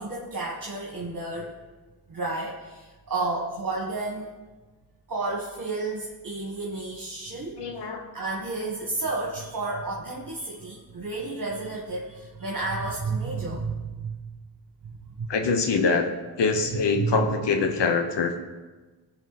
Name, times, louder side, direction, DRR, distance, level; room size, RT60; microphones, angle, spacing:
voice 1, 0.0-1.5 2.1-4.3 5.1-7.6 8.1-14.1 15.2-15.3 17.0-17.2, right 3 dB, 50° right, -3 dB, 1.6 m, -31 dB
voice 2, 7.6-8.0 15.3-16.1 16.4-18.3, left 4 dB, 90° left, 5 dB, 1.1 m, -24 dB
15.0 x 5.1 x 4.1 m, 1.3 s
cardioid pair, 60°, 41 cm